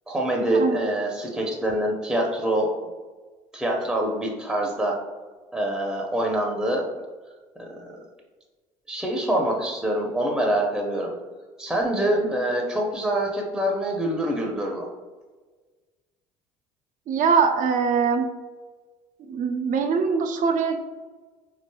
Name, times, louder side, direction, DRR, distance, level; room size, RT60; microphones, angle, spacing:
voice 1, 0.1-2.7 3.5-4.9 5.5-6.9 7.6-7.8 8.9-11.1 11.6-14.9, right 1 dB, ahead, -1 dB, 0.7 m, -25 dB
voice 2, 17.1-18.2 19.3-20.8, right 5 dB, 50° right, 6 dB, 0.5 m, -22 dB
3.9 x 3.2 x 2.2 m, 1.4 s
hypercardioid pair, 65°, 17 cm